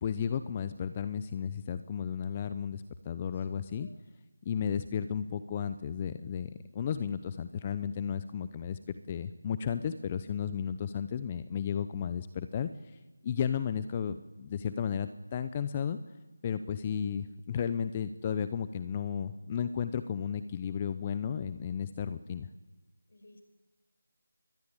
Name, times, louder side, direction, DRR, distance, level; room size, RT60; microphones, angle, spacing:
voice 1, 0.0-3.9 4.4-8.8 9.1-13.0 13.2-16.0 16.4-22.5, left 7 dB, 20° left, 12 dB, 0.7 m, -34 dB
voice 2, 3.4-4.0 23.1-23.4, left 1 dB, 60° left, 8 dB, 5.5 m, -58 dB
23.0 x 21.0 x 8.9 m, 1.2 s
figure-of-eight pair, 170°, 0 cm